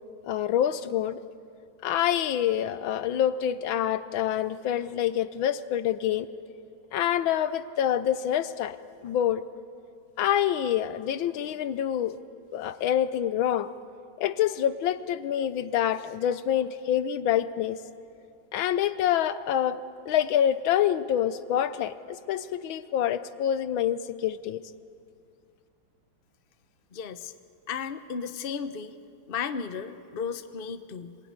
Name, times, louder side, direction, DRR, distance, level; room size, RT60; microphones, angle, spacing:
voice 1, 0.2-1.2 1.8-6.3 6.9-8.8 9.0-9.4 10.2-12.2 12.5-13.7 14.2-17.8 18.5-24.6, left 10 dB, 85° left, 14 dB, 1.6 m, -26 dB
voice 2, 26.9-27.3 27.7-28.9 29.3-31.2, left 6 dB, 40° left, 10 dB, 0.8 m, -34 dB
25.5 x 20.0 x 9.5 m, 2.4 s
omnidirectional pair, 2.1 m